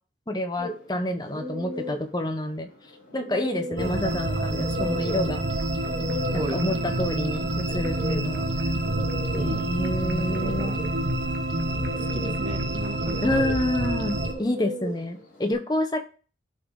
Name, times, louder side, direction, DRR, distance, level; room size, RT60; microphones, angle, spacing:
voice 1, 0.3-2.7 3.1-5.4 6.3-8.5 9.3-10.8 13.2-16.0, left 1 dB, 20° left, 6 dB, 0.9 m, -28 dB
sound 1, 0.6-15.5, left 1 dB, 60° left, 4.2 m, -38 dB
sound 2, 3.8-14.3, right 1 dB, 80° right, 1.2 m, -27 dB
voice 2, 6.3-7.1 9.3-9.7 10.2-10.8 12.1-13.4, right 2 dB, 30° right, 11 dB, 0.4 m, -36 dB
11.5 x 4.1 x 4.8 m, 0.37 s
head